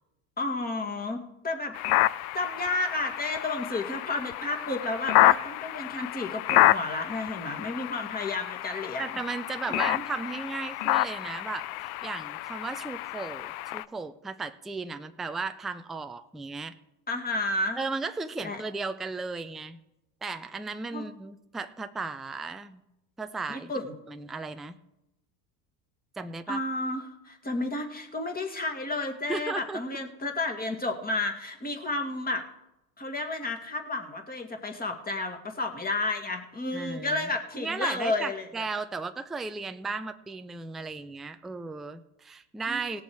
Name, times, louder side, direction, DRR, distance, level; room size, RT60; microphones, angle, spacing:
voice 1, 0.4-1.8 2.3-9.1 9.7-10.0 17.1-17.8 18.4-18.6 20.9-21.0 23.5-23.9 26.5-32.4 33.0-38.7 42.7-42.8, left 2 dB, 20° left, 4 dB, 2.1 m, -32 dB
sound 1, 1.7-13.8, left 17 dB, 65° left, 0.6 m, -28 dB
voice 2, 9.0-16.7 17.8-19.8 20.2-22.8 23.2-23.7 24.1-24.8 26.2-26.6 29.3-29.8 36.7-37.3 37.6-43.0, right 4 dB, ahead, 8 dB, 0.3 m, -35 dB
18.0 x 7.0 x 4.7 m, 0.88 s
supercardioid pair, 95°, 48 cm